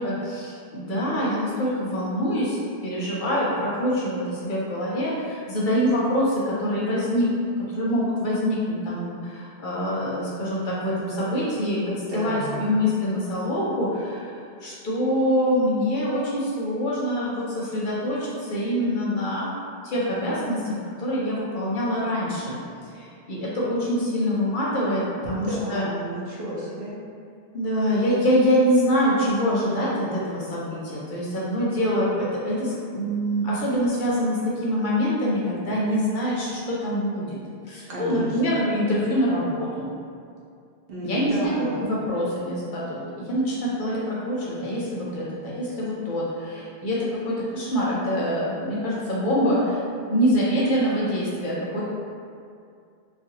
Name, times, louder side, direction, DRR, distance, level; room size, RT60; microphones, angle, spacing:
voice 1, 0.0-7.3 7.7-11.8 12.1-19.5 19.8-22.6 22.9-25.8 27.5-37.4 37.7-39.9 41.0-41.5 41.8-49.8 50.1-51.8, equal, 60° left, -6 dB, 0.6 m, -25 dB
voice 2, 12.1-12.7 25.2-26.9 37.9-38.4 40.9-41.8, right 2 dB, 70° right, -6 dB, 0.8 m, -32 dB
2.4 x 2.2 x 2.7 m, 2.3 s
omnidirectional pair, 1.0 m